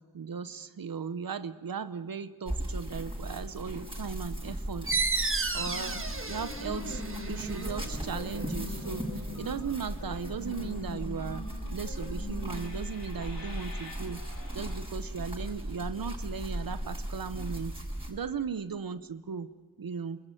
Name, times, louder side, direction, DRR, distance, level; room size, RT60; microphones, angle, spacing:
voice 1, 0.1-5.0 5.5-6.0 6.3-7.0 7.3-9.1 9.3-11.4 11.7-14.2 14.5-17.7 18.1-19.5 19.8-20.2, right 6 dB, 85° right, 12 dB, 0.8 m, -37 dB
sound 1, 2.5-18.1, equal, 15° right, 6.5 m, -37 dB
sound 2, 4.9-10.1, right 3 dB, 40° right, 1.5 m, -34 dB
sound 3, 5.5-14.8, left 3 dB, 85° left, 3.9 m, -44 dB
27.0 x 14.5 x 9.0 m, 1.4 s
wide cardioid pair, 50°, 34 cm